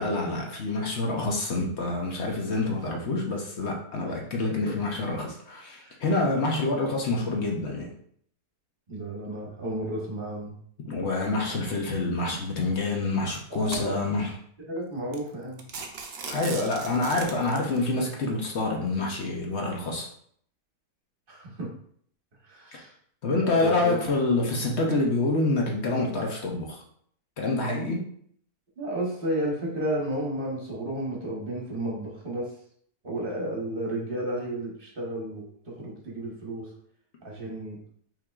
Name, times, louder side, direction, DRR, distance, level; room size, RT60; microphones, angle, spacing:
voice 1, 0.0-7.9 10.9-14.3 16.3-20.1 22.7-22.8 23.2-26.8 27.4-28.1, left 2 dB, 55° left, 0 dB, 0.9 m, -27 dB
voice 2, 8.9-10.6 13.5-14.2 14.7-15.6 21.3-21.7 22.4-22.9 23.4-24.0 28.8-32.5 33.0-36.7 37.2-37.8, right 1 dB, 40° right, -3 dB, 1.3 m, -32 dB
sound 1, 12.4-12.6 13.2-14.2 14.8-14.9 15.1-15.3 15.6-17.8, right 5 dB, 55° right, 0.7 m, -39 dB
5.7 x 3.7 x 2.4 m, 0.62 s
omnidirectional pair, 1.6 m